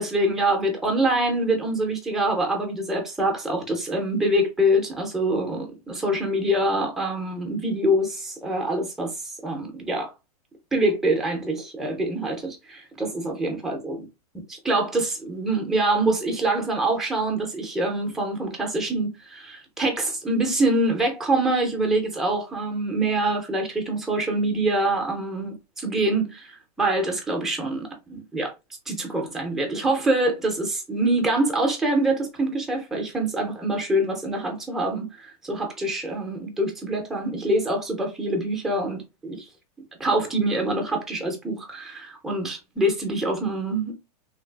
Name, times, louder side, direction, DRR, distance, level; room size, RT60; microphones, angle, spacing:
voice 1, 0.0-10.1 10.7-14.0 14.5-28.5 28.9-39.5 40.0-43.9, right 1 dB, ahead, 0.4 m, -25 dB
3.2 x 2.4 x 2.2 m
supercardioid pair, 155°, 20 cm